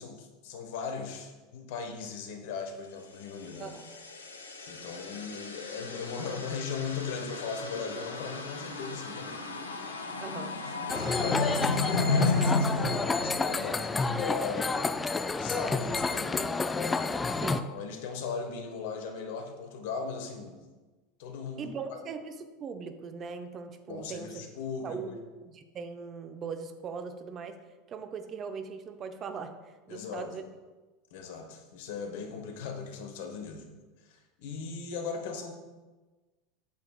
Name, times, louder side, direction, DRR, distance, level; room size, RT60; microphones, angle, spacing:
voice 1, 0.0-3.8 4.7-9.4 10.7-14.8 15.3-16.5 17.6-20.6 21.2-22.0 23.9-25.2 29.9-30.3 31.1-33.6 34.1-35.5, left 5 dB, 55° left, 4 dB, 1.0 m, -38 dB
sound 1, 3.3-14.0, left 3 dB, 75° left, 0.7 m, -33 dB
voice 2, 10.2-10.5 17.3-17.7 21.6-24.4 24.8-25.1 25.4-27.6 27.9-30.4, right 5 dB, 35° right, 8 dB, 0.6 m, -40 dB
sound 2, 10.9-17.6, left 4 dB, 15° left, 0.3 m, -29 dB
8.2 x 6.7 x 2.2 m, 1.2 s
figure-of-eight pair, 80°, 0 cm